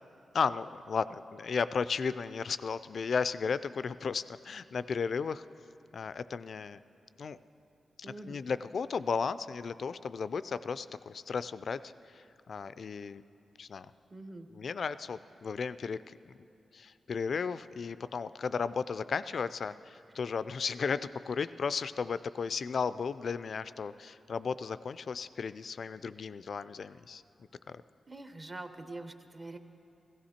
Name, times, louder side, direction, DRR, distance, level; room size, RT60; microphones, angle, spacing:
voice 1, 0.3-5.4 5.9-6.8 7.2-7.4 8.0-13.2 13.6-13.9 14.5-16.4 16.7-27.2 27.7-27.8, left 5 dB, 65° left, 15 dB, 0.3 m, -34 dB
voice 2, 8.0-8.4 14.1-14.5 28.1-29.6, right 2 dB, 30° right, 8 dB, 0.8 m, -44 dB
15.5 x 14.5 x 4.3 m, 2.8 s
cardioid pair, 80°, 0 cm